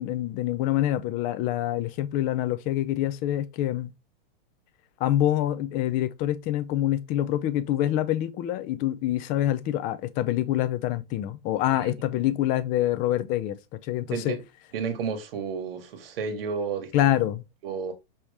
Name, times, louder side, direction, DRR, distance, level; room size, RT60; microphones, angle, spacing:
voice 1, 0.0-3.9 5.0-13.6 13.8-14.4 16.9-17.4, left 13 dB, 30° left, 0.5 m, -26 dB
voice 2, 14.1-14.4 14.7-17.2 17.6-17.9, right 6 dB, 70° right, 1.4 m, -32 dB
5.4 x 3.0 x 3.3 m
supercardioid pair, 145°, 29 cm